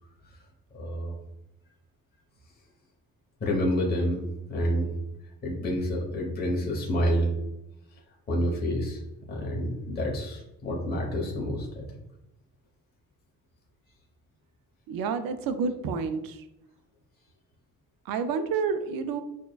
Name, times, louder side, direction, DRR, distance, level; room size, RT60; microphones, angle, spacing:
voice 1, 0.7-1.1 3.4-4.2 4.5-4.9 5.4-7.3 8.3-9.0 9.3-11.8, equal, 30° left, -2 dB, 1.0 m, -28 dB
voice 2, 14.9-16.5 18.0-19.2, right 5 dB, 85° right, 10 dB, 0.5 m, -29 dB
6.2 x 2.2 x 2.3 m, 0.92 s
cardioid pair, 110°, 34 cm